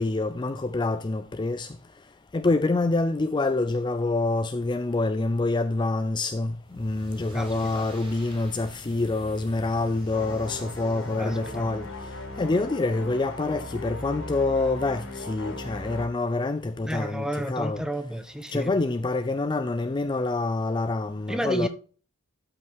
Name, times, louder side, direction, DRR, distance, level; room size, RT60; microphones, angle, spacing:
voice 1, 0.0-1.7 2.3-11.9 12.4-17.8 18.5-21.7, left 2 dB, 20° left, 0.4 m, -26 dB
sound 1, 6.6-11.9, equal, 25° right, 3.6 m, -45 dB
voice 2, 7.3-7.8 11.2-11.7 16.8-18.7 21.3-21.7, equal, 5° right, 1.0 m, -31 dB
sound 2, 10.1-16.1, left 2 dB, 85° left, 3.3 m, -38 dB
12.5 x 5.6 x 3.6 m
head